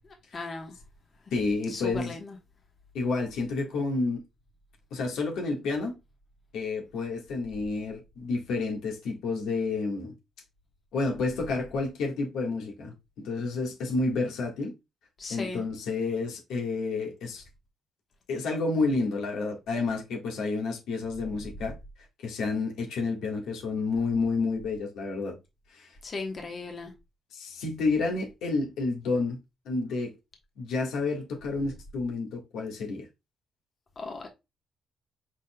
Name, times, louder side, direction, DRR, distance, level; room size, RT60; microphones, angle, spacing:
voice 1, 0.3-0.7 1.7-2.3 15.2-15.6 26.0-26.9 34.0-34.3, left 3 dB, 40° left, 1.1 m, -36 dB
voice 2, 1.3-2.2 2.9-4.2 4.9-6.0 6.5-10.1 10.9-14.7 15.3-17.4 18.3-21.7 22.2-25.4 25.7-25.9 27.3-29.4 29.6-30.1 30.6-33.1, left 3 dB, 85° left, 1.5 m, -30 dB
4.9 x 4.2 x 2.2 m
cardioid pair, 90°, 0 cm